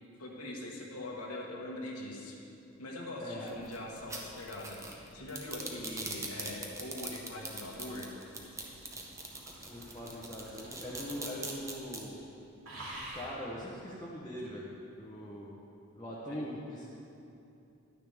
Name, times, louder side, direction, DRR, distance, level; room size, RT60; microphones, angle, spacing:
voice 1, 0.2-2.4 2.8-8.1 16.2-16.5, left 1 dB, 90° left, -2 dB, 1.5 m, -42 dB
voice 2, 3.2-3.6 9.7-12.2 12.8-14.7 15.0-15.6 16.0-17.0, equal, 20° left, -6 dB, 0.9 m, -42 dB
sound 1, 3.5-12.0, right 3 dB, 15° right, 0.7 m, -41 dB
sound 2, 6.0-11.8 12.0-12.3 12.6-13.4 14.4-14.5, right 1 dB, 80° right, 2.5 m, -49 dB
11.5 x 9.5 x 3.5 m, 2.7 s
head